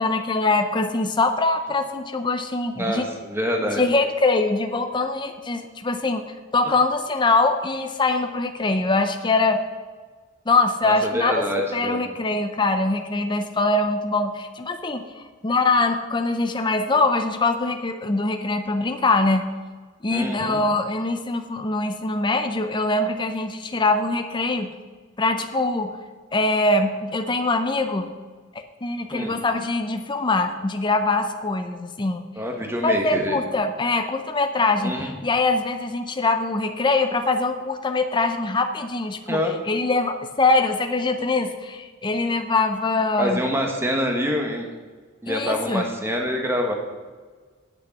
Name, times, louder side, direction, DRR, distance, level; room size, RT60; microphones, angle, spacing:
voice 1, 0.0-3.0 3.8-6.2 6.5-9.6 10.5-11.4 11.7-19.5 20.0-24.7 25.2-26.0 26.3-28.1 28.8-32.2 32.8-43.4 45.3-45.9, left 3 dB, 20° left, 6 dB, 0.6 m, -23 dB
voice 2, 2.8-3.8 10.8-12.1 20.1-20.6 29.1-29.4 32.4-33.4 34.8-35.1 39.3-39.5 43.2-44.7 45.2-46.7, equal, 10° right, 2 dB, 1.4 m, -26 dB
8.4 x 6.5 x 7.8 m, 1.4 s
head